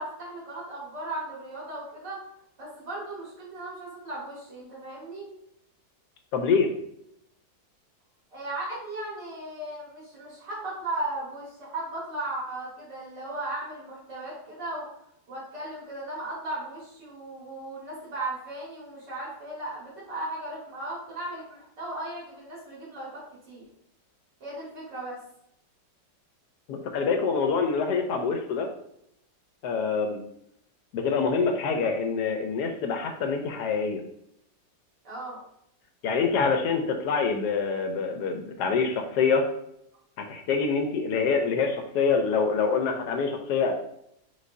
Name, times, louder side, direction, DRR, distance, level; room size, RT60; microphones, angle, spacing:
voice 1, 0.0-2.2 2.6-5.3 8.3-14.9 15.3-23.7 24.4-25.2 35.0-35.4, right 2 dB, 75° right, -6 dB, 2.4 m, -36 dB
voice 2, 6.3-6.7 26.7-28.7 29.6-30.2 30.9-34.0 36.0-39.4 40.3-43.7, left 5 dB, 75° left, 5 dB, 1.1 m, -25 dB
5.2 x 3.8 x 2.6 m, 0.75 s
omnidirectional pair, 1.9 m